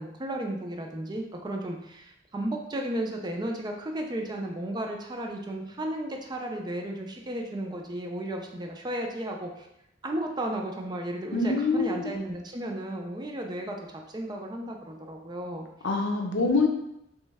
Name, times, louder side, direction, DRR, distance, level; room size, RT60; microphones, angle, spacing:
voice 1, 0.0-9.7 10.0-13.8 14.1-15.7, right 1 dB, 25° right, 2 dB, 0.4 m, -34 dB
voice 2, 11.3-12.1 15.8-16.7, left 3 dB, 85° left, 2 dB, 0.6 m, -25 dB
3.1 x 3.1 x 3.4 m, 0.80 s
head